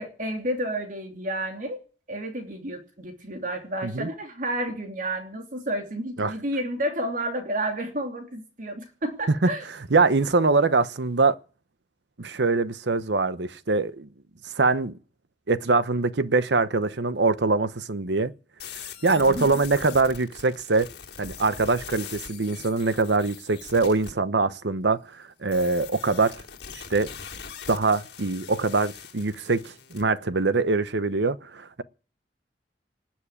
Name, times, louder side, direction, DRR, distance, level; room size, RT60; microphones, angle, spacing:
voice 1, 0.0-1.8 2.1-9.6 19.1-19.6, right 1 dB, 50° right, 3.1 m, -31 dB
voice 2, 9.9-11.4 12.2-14.1 14.6-14.9 15.5-18.3 19.0-20.9 21.2-26.4 26.7-27.1 27.7-31.8, right 3 dB, 80° right, 0.9 m, -23 dB
sound 1, 18.6-24.1 25.5-30.0, left 7 dB, 70° left, 3.1 m, -42 dB
19.0 x 7.5 x 10.0 m
head